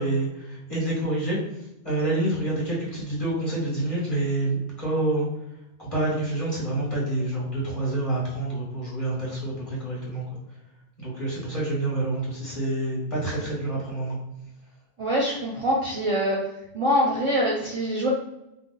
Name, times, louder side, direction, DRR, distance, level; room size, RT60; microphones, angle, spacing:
voice 1, 0.0-1.4 1.8-5.3 5.8-10.2 11.0-14.2, right 2 dB, 30° left, -7 dB, 1.3 m, -27 dB
voice 2, 15.0-16.4 16.7-18.1, equal, 35° right, -4 dB, 0.5 m, -24 dB
2.7 x 2.0 x 3.8 m, 0.87 s
omnidirectional pair, 1.2 m